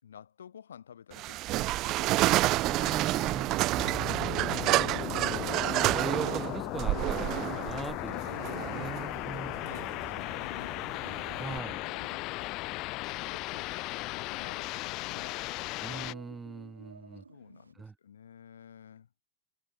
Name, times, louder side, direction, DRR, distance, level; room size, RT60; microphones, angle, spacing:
voice 1, 0.0-5.5 8.1-10.8 13.1-15.5 17.3-19.1, left 8 dB, 65° left, 6.1 m, -52 dB
sound 1, 1.1-11.6, right 18 dB, 40° right, 1.3 m, -29 dB
voice 2, 2.6-3.5 5.2-5.5 5.9-8.2 8.7-9.5 11.4-11.8 15.8-17.2 17.8-17.9, right 4 dB, 10° right, 3.6 m, -40 dB
sound 2, 3.7-16.1, left 22 dB, 40° left, 1.1 m, -37 dB
Dog, 7.2-17.7, right 4 dB, 75° right, 6.8 m, -55 dB
figure-of-eight pair, 90°, 0 cm